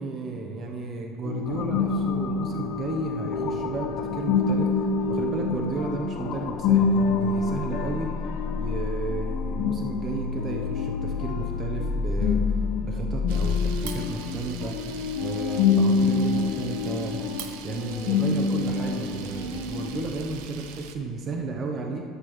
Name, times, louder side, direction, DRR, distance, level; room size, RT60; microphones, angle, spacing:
voice 1, 0.0-8.1 8.5-12.4 12.8-14.8 15.2-17.2 17.6-22.0, right 3 dB, 30° right, 2 dB, 0.6 m, -33 dB
sound 1, 1.2-20.0, left 4 dB, 65° left, 0.9 m, -27 dB
sound 2, 1.5-13.7, left 5 dB, 45° left, 0.3 m, -32 dB
Camera, 13.3-20.9, right 6 dB, 80° right, 0.6 m, -42 dB
13.0 x 6.8 x 3.0 m, 2.5 s
cardioid pair, 155°, 0 cm